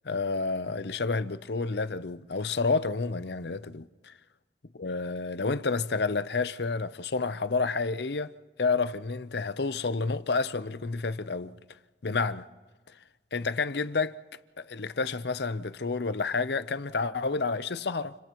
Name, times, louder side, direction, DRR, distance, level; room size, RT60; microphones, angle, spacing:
voice 1, 0.0-4.1 4.8-8.3 8.6-11.6 12.0-12.5 13.3-14.2 14.6-18.1, left 4 dB, 65° left, 0.7 m, -30 dB
30.0 x 29.5 x 3.1 m
head